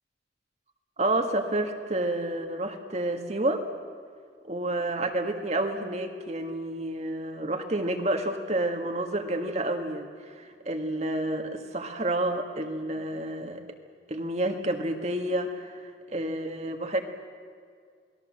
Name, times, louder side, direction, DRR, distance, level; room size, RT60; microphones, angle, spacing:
voice 1, 1.0-3.6 4.5-13.6 14.1-17.0, right 1 dB, 40° right, 5 dB, 1.8 m, -29 dB
28.0 x 20.0 x 7.6 m, 2.1 s
head